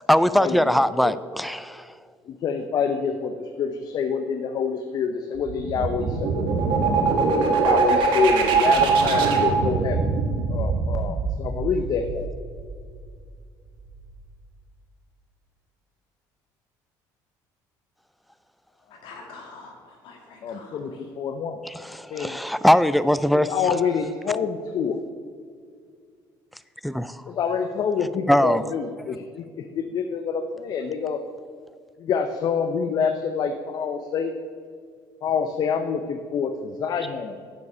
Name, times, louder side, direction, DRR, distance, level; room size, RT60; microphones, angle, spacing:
voice 1, 0.0-1.9 21.6-23.7 26.8-27.2 28.3-28.6, equal, ahead, 15 dB, 0.3 m, -21 dB
voice 2, 2.3-6.3 7.6-12.3 20.4-21.6 22.1-22.4 23.5-25.0 27.3-31.2 32.0-34.3 35.2-37.4, left 6 dB, 50° left, 7 dB, 0.6 m, -27 dB
sound 1, 5.4-13.0, right 4 dB, 70° right, 1.4 m, -22 dB
voice 3, 18.9-21.1, left 3 dB, 70° left, 0 dB, 2.0 m, -45 dB
9.8 x 6.9 x 5.5 m, 2.1 s
cardioid pair, 110°, 9 cm